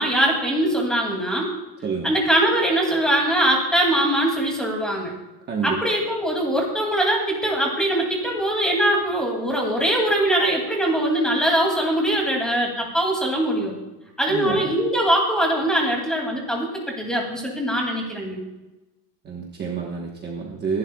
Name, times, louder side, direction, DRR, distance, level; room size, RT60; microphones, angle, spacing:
voice 1, 0.0-1.5 2.0-5.1 5.6-13.8 14.2-18.4, right 1 dB, ahead, -1 dB, 2.5 m, -22 dB
voice 2, 5.5-5.8 14.3-14.7 19.2-20.8, right 5 dB, 25° right, -1 dB, 1.2 m, -28 dB
24.5 x 12.0 x 2.3 m, 1.0 s
cardioid pair, 180°, 43 cm